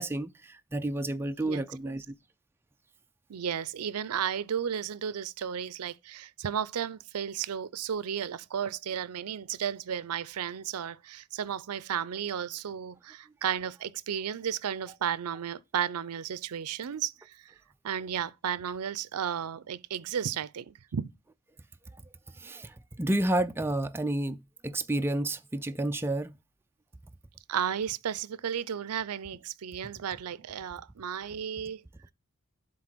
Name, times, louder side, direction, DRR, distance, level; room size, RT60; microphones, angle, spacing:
voice 1, 0.0-2.2 22.4-26.3, right 1 dB, 10° right, 0.4 m, -30 dB
voice 2, 1.5-1.9 3.3-17.5 17.8-21.1 27.5-31.8, right 8 dB, 80° right, 0.5 m, -33 dB
7.7 x 3.7 x 6.0 m
head